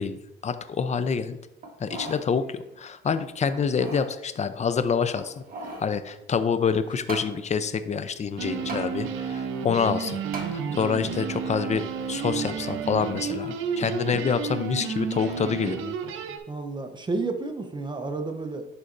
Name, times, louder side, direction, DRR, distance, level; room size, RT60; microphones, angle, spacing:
voice 1, 0.0-1.4 1.8-5.4 5.8-10.2 10.5-11.8 12.1-16.0, left 6 dB, 35° left, 12 dB, 0.5 m, -27 dB
sound 1, 1.6-2.3 2.7-2.8 3.5-4.1 5.1-5.9 7.1-7.3 8.7-8.9 10.3-10.5 11.1-11.2, right 3 dB, 45° right, 1.4 m, -37 dB
sound 2, 8.4-16.4, right 6 dB, 85° right, 0.7 m, -31 dB
voice 2, 16.5-18.7, right 3 dB, 20° right, 6 dB, 0.9 m, -31 dB
11.0 x 4.2 x 2.6 m, 0.89 s
cardioid pair, 90°, 20 cm